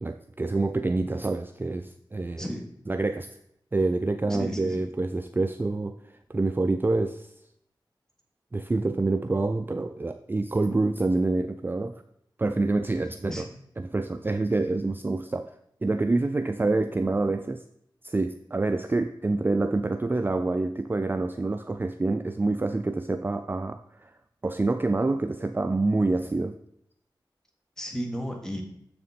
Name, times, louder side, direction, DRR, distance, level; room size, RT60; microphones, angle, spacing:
voice 1, 0.0-2.4 2.9-3.3 3.7-6.0 6.3-7.3 8.5-12.0 12.4-13.5 13.8-15.5 15.8-17.6 18.0-24.1 24.4-26.6, right 2 dB, 25° right, 9 dB, 0.3 m, -27 dB
voice 2, 4.3-4.8 13.3-13.6 27.8-28.6, equal, 5° left, 2 dB, 1.7 m, -33 dB
7.4 x 6.7 x 4.2 m, 0.74 s
wide cardioid pair, 75°, 8 cm